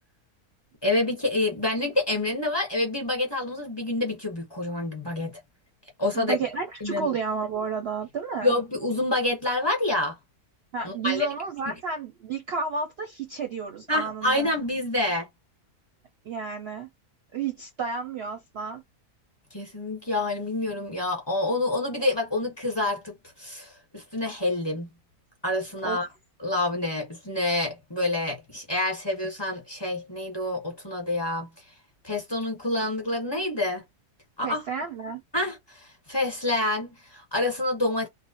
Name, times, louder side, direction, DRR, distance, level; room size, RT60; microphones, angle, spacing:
voice 1, 0.8-5.3 6.0-6.4 6.8-7.1 8.4-10.1 10.8-11.3 13.9-15.3 19.5-23.1 23.4-24.9 25.4-26.1 26.4-31.5 32.0-33.8 34.4-34.6 35.3-38.1, left 2 dB, 20° left, 1.0 m, -27 dB
voice 2, 6.1-8.5 10.7-14.5 16.2-16.9 17.3-18.8 25.8-26.0 34.4-35.2, right 5 dB, 60° right, 0.7 m, -31 dB
2.4 x 2.0 x 2.8 m
omnidirectional pair, 1.5 m